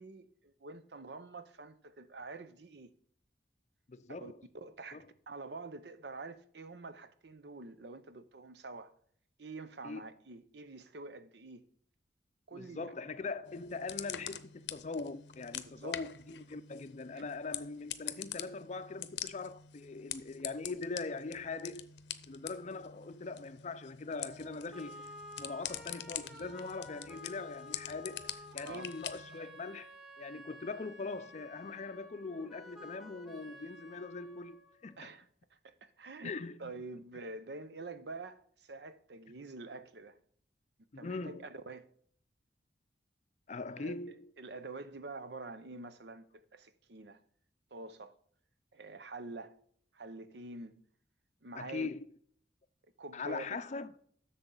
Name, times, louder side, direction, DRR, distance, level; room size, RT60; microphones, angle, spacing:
voice 1, 0.0-2.9 4.2-8.9 9.4-11.6 12.5-12.9 15.8-15.9 17.1-17.3 28.6-28.9 35.0-35.3 35.6-40.2 41.0-41.9 43.7-47.2 47.7-48.2 48.7-49.5 49.9-50.8 51.4-51.9 53.0-53.4, right 3 dB, 70° right, 0.7 m, -47 dB
voice 2, 3.9-4.4 4.9-5.0 9.8-10.0 12.5-21.9 22.3-25.1 25.4-29.9 30.2-35.1 36.2-36.7 40.9-41.5 43.5-44.3 51.5-52.1 53.1-54.0, left 4 dB, 40° left, 0.5 m, -41 dB
sound 1, 13.5-29.4, left 11 dB, 80° left, 0.6 m, -45 dB
sound 2, 24.1-35.1, left 1 dB, ahead, 1.2 m, -52 dB
11.0 x 6.9 x 3.8 m
head